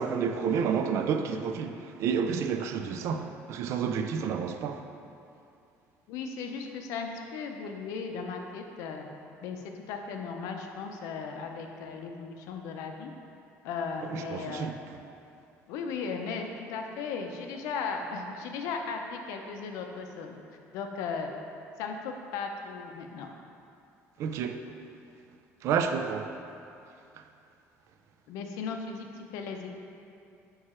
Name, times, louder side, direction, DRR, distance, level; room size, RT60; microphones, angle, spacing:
voice 1, 0.0-4.8 14.1-14.7 24.2-24.6 25.6-26.4, right 6 dB, 60° right, 0.4 m, -30 dB
voice 2, 6.1-9.1 9.4-13.1 13.6-14.7 15.7-20.4 20.7-21.3 21.8-23.3 28.3-29.7, left 5 dB, 85° left, 0.6 m, -36 dB
4.7 x 4.7 x 4.3 m
cardioid pair, 145°, 5 cm